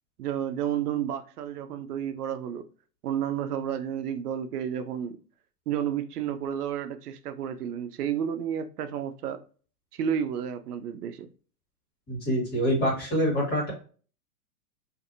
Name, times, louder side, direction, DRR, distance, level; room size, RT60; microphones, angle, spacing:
voice 1, 0.2-2.6 3.0-5.2 5.7-9.4 9.9-11.3, right 9 dB, 80° right, 0.6 m, -31 dB
voice 2, 12.1-13.7, equal, 20° left, 1.5 m, -25 dB
2.6 x 2.6 x 2.5 m
hypercardioid pair, 130°, 46 cm